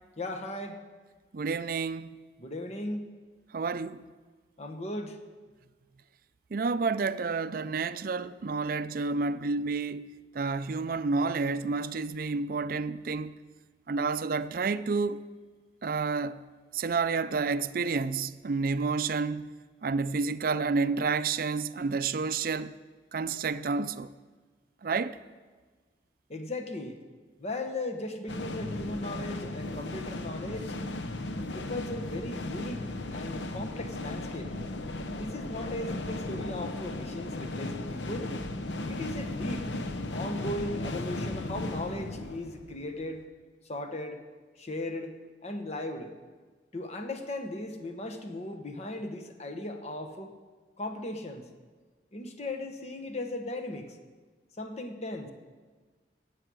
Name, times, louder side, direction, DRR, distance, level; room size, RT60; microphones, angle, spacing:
voice 1, 0.2-0.8 2.4-3.1 4.6-5.2 26.3-27.0 27.4-30.8 31.4-32.8 33.1-34.5 35.1-38.3 38.9-39.7 40.1-43.2 43.6-44.2 44.6-45.1 45.4-46.1 46.7-50.3 50.8-51.5 52.1-54.0 54.6-55.3, left 1 dB, 35° left, 1.1 m, -37 dB
voice 2, 1.3-2.2 3.5-4.0 6.5-10.1 10.3-13.3 13.9-15.2 15.8-16.4 16.7-19.5 19.8-22.8 23.1-24.1 24.8-25.2, right 4 dB, 50° right, 0.4 m, -30 dB
sound 1, 28.3-43.1, left 2 dB, 85° left, 0.8 m, -36 dB
16.5 x 7.7 x 6.2 m
head